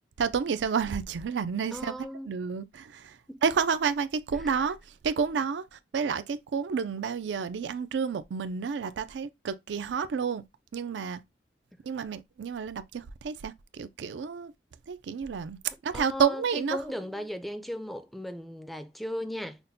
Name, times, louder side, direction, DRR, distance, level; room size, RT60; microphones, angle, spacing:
voice 1, 0.2-1.9 2.3-3.2 3.4-4.8 5.0-10.4 10.7-11.2 11.9-14.5 14.9-16.8, right 6 dB, 80° right, 0.4 m, -30 dB
voice 2, 1.7-2.3 3.3-3.4 4.4-4.6 15.9-19.6, equal, ahead, 0.3 m, -37 dB
5.8 x 2.1 x 2.6 m
head